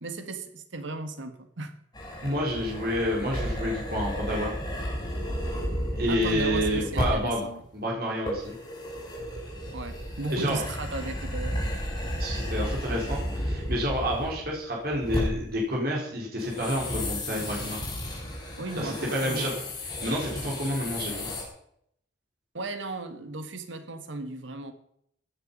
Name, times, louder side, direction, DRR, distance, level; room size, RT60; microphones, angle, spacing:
voice 1, 0.0-1.7 5.7-7.6 9.7-11.8 18.6-19.5 22.5-24.7, right 2 dB, 80° right, 9 dB, 1.7 m, -36 dB
sound 1, 1.9-7.3 8.3-14.6 14.9-15.5 16.4-21.4, equal, 20° left, 4.9 m, -33 dB
voice 2, 2.2-4.5 5.9-7.4 7.7-8.6 10.3-10.6 12.2-17.9 18.8-19.5 19.8-21.3, equal, 50° right, -2 dB, 4.2 m, -29 dB
16.0 x 10.5 x 5.4 m, 0.70 s
head